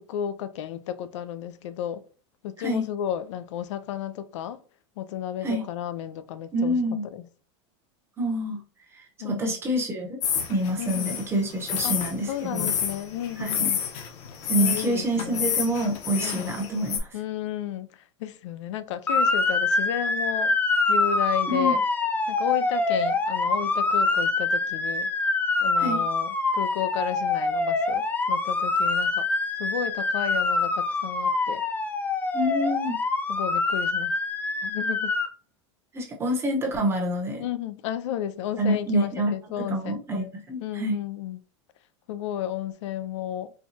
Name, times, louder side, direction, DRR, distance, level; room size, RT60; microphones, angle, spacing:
voice 1, 0.1-2.0 2.4-4.6 5.0-6.8 7.1-7.2 9.2-9.6 10.8-11.1 11.8-12.0 12.3-13.8 14.5-15.5 16.2-16.6 17.1-20.6 20.9-21.8 22.3-25.1 25.6-29.3 29.6-31.6 33.3-34.1 34.6-35.1 37.4-40.0 40.6-41.4 42.1-43.5, left 10 dB, 75° left, 0.4 m, -33 dB
voice 2, 6.5-7.0 8.2-8.6 9.0-10.2 10.5-12.7 13.4-13.7 14.5-17.1 21.5-21.8 25.8-26.0 32.3-33.0 35.9-37.4 38.6-41.0, equal, 15° right, 0.9 m, -27 dB
sound 1, 10.2-17.0, left 8 dB, 45° left, 0.8 m, -29 dB
Motor vehicle (road) / Siren, 19.1-35.3, left 3 dB, 10° left, 0.4 m, -25 dB
4.4 x 2.2 x 2.7 m
supercardioid pair, 145°, 15 cm